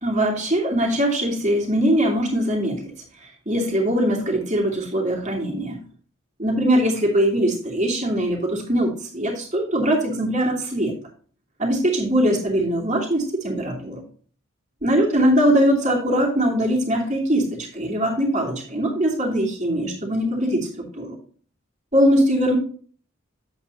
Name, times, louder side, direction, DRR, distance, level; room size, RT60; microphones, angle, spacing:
voice 1, 0.0-2.9 3.2-5.8 6.4-10.9 11.6-14.0 14.8-21.2 21.9-22.6, equal, 35° right, -1 dB, 2.6 m, -21 dB
9.1 x 7.9 x 2.7 m, 0.43 s
head